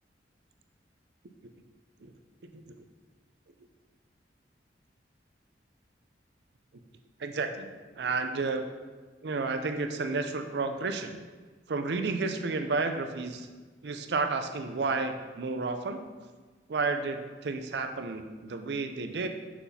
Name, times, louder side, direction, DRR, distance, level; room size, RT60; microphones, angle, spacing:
voice 1, 7.2-7.7 8.0-8.6 9.2-11.2 11.7-13.5 13.8-16.0 16.7-19.3, right 3 dB, 65° right, 7 dB, 0.5 m, -31 dB
6.0 x 5.8 x 2.7 m, 1.3 s
head